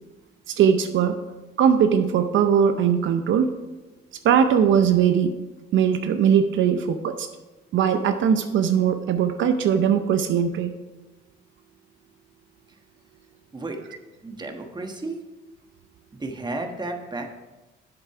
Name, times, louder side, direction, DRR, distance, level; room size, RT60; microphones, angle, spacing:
voice 1, 0.5-1.2 1.6-3.5 4.2-5.3 5.7-7.3 7.7-10.7, right 8 dB, 75° right, 8 dB, 0.6 m, -20 dB
voice 2, 14.2-15.2 16.2-17.3, right 2 dB, 20° right, 4 dB, 1.3 m, -32 dB
7.7 x 7.6 x 4.8 m, 1.1 s
cardioid pair, 90°, 20 cm